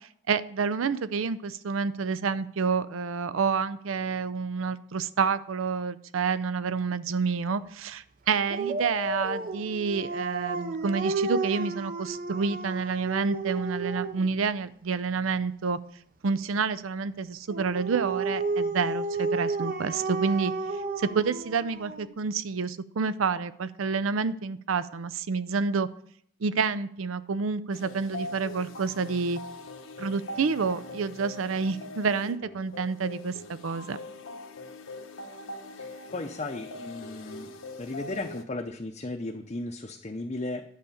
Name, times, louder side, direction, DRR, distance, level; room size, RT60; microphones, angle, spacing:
voice 1, 0.3-15.8 16.2-20.5 21.0-25.9 26.4-29.4 30.0-34.0, right 5 dB, 85° right, 14 dB, 0.5 m, -29 dB
Dog, 8.5-14.3 17.5-22.1, right 3 dB, 45° right, 0.7 m, -32 dB
sound 1, 27.7-38.4, left 2 dB, 80° left, 1.0 m, -42 dB
voice 2, 35.7-37.5 37.8-40.6, left 2 dB, 35° left, 2 dB, 0.6 m, -35 dB
10.5 x 4.9 x 7.1 m, 0.64 s
head